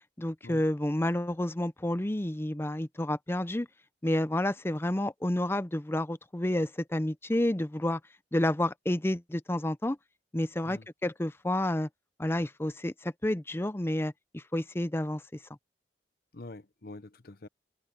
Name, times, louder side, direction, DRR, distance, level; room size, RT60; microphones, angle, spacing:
voice 1, 0.2-3.7 4.0-8.0 8.3-10.0 10.3-11.9 12.2-15.2, left 1 dB, 15° left, 0.6 m, -30 dB
voice 2, 16.3-17.5, left 2 dB, 60° left, 0.9 m, -45 dB
open air
head